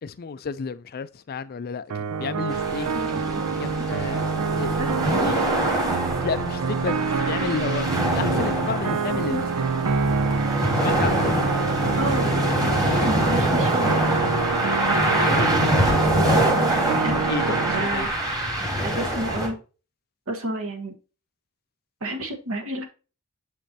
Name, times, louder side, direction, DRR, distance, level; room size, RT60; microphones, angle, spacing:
voice 1, 0.0-2.9 3.6-4.2 4.6-4.8 5.2-5.4 6.2-9.7 10.7-11.3 17.3-18.1, left 5 dB, 45° left, 0.4 m, -32 dB
sound 1, 1.9-17.8, right 5 dB, 85° right, 0.5 m, -26 dB
sound 2, 2.5-19.5, right 1 dB, 15° right, 1.9 m, -25 dB
voice 2, 2.9-3.5 4.8-4.9 10.9-11.1 11.9-12.3 13.0-14.5 17.0-17.1 17.5-18.1 18.8-19.6 20.3-20.9 22.0-22.9, right 1 dB, 65° right, 1.5 m, -30 dB
7.3 x 5.3 x 2.8 m
head